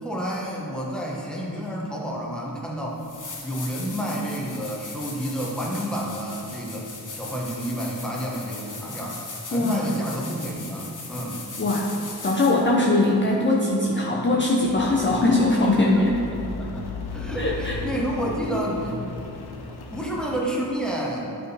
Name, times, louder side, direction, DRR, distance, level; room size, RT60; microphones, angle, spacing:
voice 1, 0.0-3.0 3.4-9.2 9.5-11.5 15.8-16.8 17.1-19.2 19.9-21.5, right 1 dB, ahead, -4 dB, 1.2 m, -30 dB
sound 1, 3.0-12.7 15.5-15.6, left 3 dB, 55° left, 1.0 m, -39 dB
voice 2, 9.5-9.9 11.6-11.9 12.2-16.2 17.4-17.8, left 2 dB, 30° left, -3 dB, 0.6 m, -21 dB
Rain, 14.6-20.4, left 3 dB, 80° left, 0.7 m, -36 dB
9.8 x 4.8 x 3.4 m, 2.7 s
wide cardioid pair, 95°, 38 cm